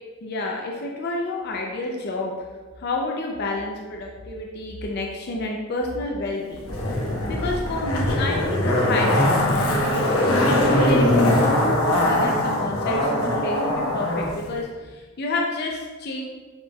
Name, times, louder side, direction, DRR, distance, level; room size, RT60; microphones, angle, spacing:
voice 1, 0.2-2.3 2.8-6.9 7.3-16.2, left 1 dB, 50° left, 0 dB, 0.5 m, -29 dB
Zipper (clothing), 6.7-14.3 14.6-14.7, left 1 dB, 85° left, 0.9 m, -21 dB
6.3 x 3.3 x 2.2 m, 1.3 s
head